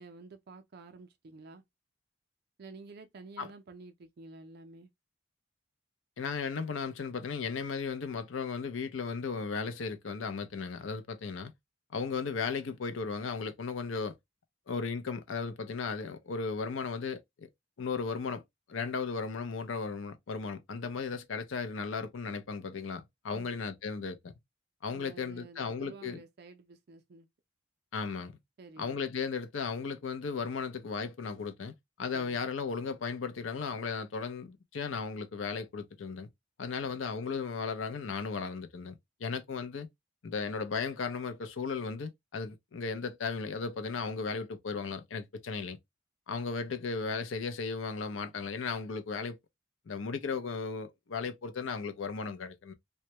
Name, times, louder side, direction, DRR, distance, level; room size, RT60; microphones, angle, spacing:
voice 1, 0.0-1.6 2.6-4.9 23.3-23.6 24.9-27.3 28.6-29.0 32.1-32.4 36.8-37.0, right 3 dB, 55° right, 0.4 m, -51 dB
voice 2, 6.2-11.5 11.9-14.2 14.7-17.5 17.8-18.4 18.7-24.3 24.8-26.2 27.9-28.3 28.8-31.7 32.0-36.3 36.6-38.9 39.2-39.9 40.2-45.8 46.3-49.4 49.9-52.7, left 5 dB, 80° left, 0.5 m, -35 dB
2.1 x 2.1 x 2.7 m
head